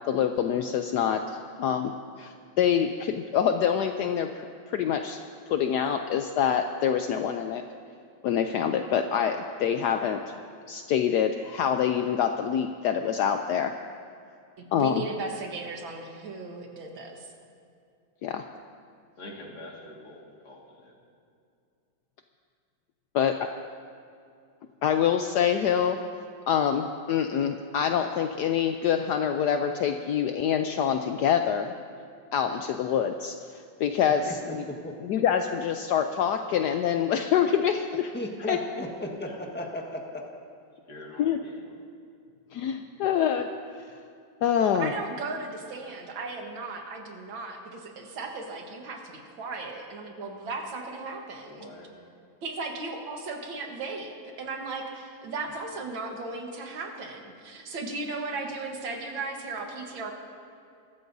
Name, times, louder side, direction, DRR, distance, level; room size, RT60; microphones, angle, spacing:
voice 1, 0.1-5.2 5.5-7.6 8.2-10.2 10.7-13.7 14.7-15.0 18.2-18.4 23.1-23.3 24.8-26.0 26.5-31.7 32.3-34.6 35.0-38.1 38.5-38.6 41.2-41.4 42.5-43.5 44.4-44.9, left 8 dB, 75° left, 6 dB, 1.0 m, -26 dB
voice 2, 14.6-17.3 44.6-51.7 52.4-60.1, right 3 dB, 85° right, 2 dB, 2.1 m, -36 dB
voice 3, 19.2-21.0 39.2-39.4 40.9-41.8 51.4-52.1, left 1 dB, 55° left, -2 dB, 2.6 m, -45 dB
voice 4, 38.1-40.0, left 1 dB, 5° left, 0 dB, 1.1 m, -34 dB
23.0 x 13.0 x 2.7 m, 2.4 s
omnidirectional pair, 2.1 m